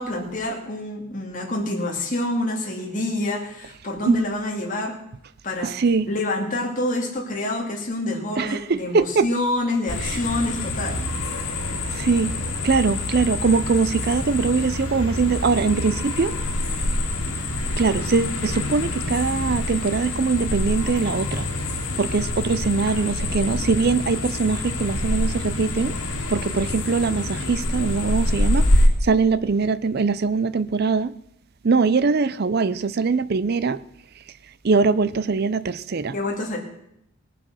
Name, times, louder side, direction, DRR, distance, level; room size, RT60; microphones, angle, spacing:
voice 1, 0.0-5.0 5.4-5.7 6.1-11.0 36.1-36.6, left 2 dB, 35° left, 2.5 m, -27 dB
voice 2, 5.6-6.1 8.4-9.3 12.0-12.3 12.6-16.3 17.8-21.5 22.0-25.9 26.3-28.7 29.0-31.1 31.6-33.8 34.6-36.2, right 4 dB, 45° right, 0.5 m, -22 dB
sound 1, 9.9-28.9, left 1 dB, 85° left, 2.3 m, -26 dB
19.0 x 7.4 x 6.3 m
head